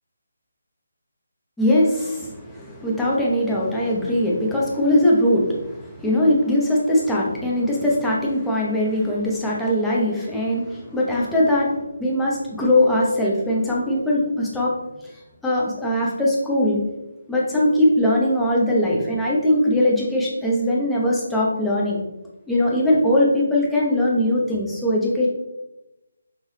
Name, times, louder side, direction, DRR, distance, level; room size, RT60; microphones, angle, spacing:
voice 1, 1.6-14.8 15.0-15.1 15.4-16.8 17.3-22.0 22.5-25.3, left 1 dB, 5° left, -5 dB, 0.7 m, -21 dB
5.6 x 2.6 x 3.2 m, 0.95 s
figure-of-eight pair, 165°, 0 cm